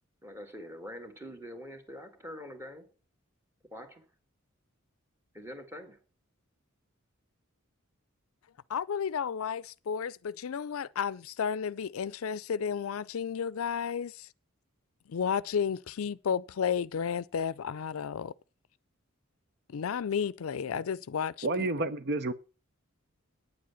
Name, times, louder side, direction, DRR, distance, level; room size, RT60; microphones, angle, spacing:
voice 1, 0.2-2.9 3.7-4.0 5.3-6.0, equal, 10° right, 1.7 m, -44 dB
voice 2, 8.7-14.3 15.1-18.3 19.7-21.9, left 7 dB, 80° left, 0.4 m, -32 dB
voice 3, 21.4-22.3, right 2 dB, 50° right, 0.7 m, -30 dB
9.3 x 7.6 x 7.0 m
head